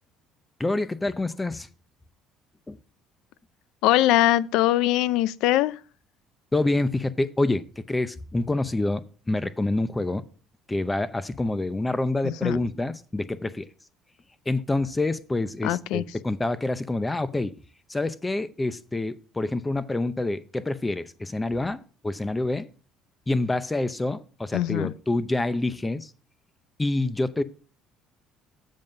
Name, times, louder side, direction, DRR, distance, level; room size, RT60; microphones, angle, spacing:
voice 1, 0.6-1.7 2.7-2.8 6.5-10.2 10.7-13.7 14.5-17.6 17.9-22.7 23.3-26.1 26.8-27.4, left 2 dB, 15° left, 0.6 m, -27 dB
voice 2, 3.8-5.8 12.2-12.6 15.6-16.0 24.5-24.9, left 14 dB, 80° left, 0.4 m, -22 dB
7.7 x 5.4 x 5.1 m
supercardioid pair, 95°, 0 cm